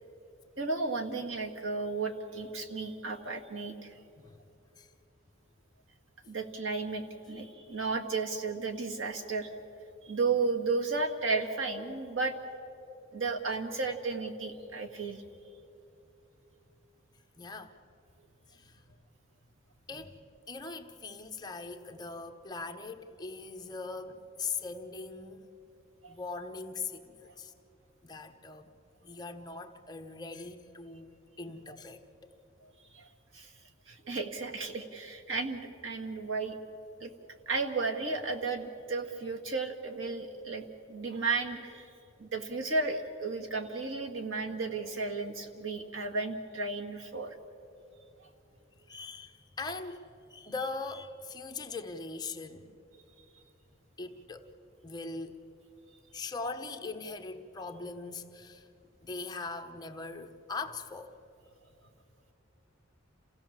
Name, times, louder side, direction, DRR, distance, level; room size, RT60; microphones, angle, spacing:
voice 1, 0.6-4.0 6.3-9.5 10.0-12.4 13.1-15.2 26.0-26.1 27.3-27.4 31.7-31.8 32.9-33.1 33.3-33.5 33.9-36.6 37.0-37.1 37.5-41.9 42.2-47.4 48.2-48.3, right 3 dB, 85° right, 4 dB, 1.7 m, -34 dB
voice 2, 17.4-17.7 18.5-18.8 19.9-20.2 20.5-25.4 26.1-27.5 28.0-28.7 29.0-31.1 31.4-32.0 48.9-52.7 54.0-54.5 54.8-55.4 56.1-58.7 59.0-61.1, left 4 dB, 20° left, 5 dB, 1.0 m, -41 dB
28.0 x 16.5 x 7.3 m, 2.9 s
head